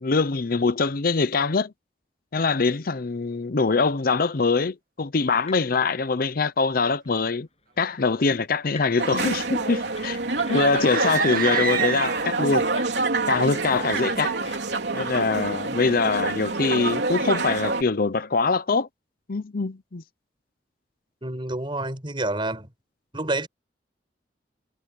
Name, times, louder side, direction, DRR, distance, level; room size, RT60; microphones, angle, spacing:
voice 1, 0.0-1.7 2.3-7.5 7.8-10.2 10.5-12.7 13.3-14.3 14.9-18.9 19.3-20.0, left 4 dB, 55° left, 0.7 m, -23 dB
sound 1, 5.5-5.8 6.1-6.5 7.0-7.1 7.3-11.3 12.3-13.2 14.0-14.2 14.4-14.7, left 6 dB, 40° left, 7.1 m, -46 dB
sound 2, 9.0-17.8, right 3 dB, 75° right, 3.3 m, -27 dB
sound 3, 10.8-12.6, right 7 dB, 55° right, 2.2 m, -27 dB
voice 2, 21.2-22.7 23.1-23.5, right 2 dB, 30° right, 4.8 m, -28 dB
head